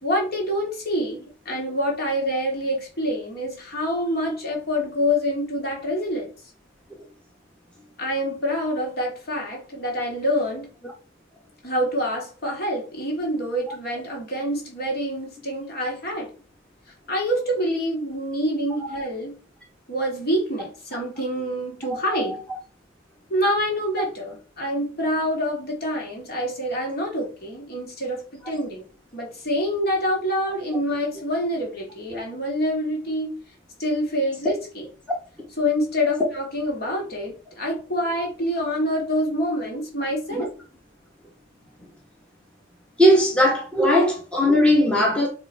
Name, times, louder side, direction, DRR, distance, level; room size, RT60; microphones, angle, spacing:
voice 1, 0.0-6.3 8.0-10.7 11.6-16.3 17.1-19.4 19.9-22.4 23.3-28.8 29.1-33.4 33.8-34.9 35.6-40.5 43.1-43.2, equal, 50° left, 2.4 m, -26 dB
voice 2, 43.0-45.3, equal, 5° left, 1.2 m, -18 dB
7.2 x 3.2 x 4.6 m
head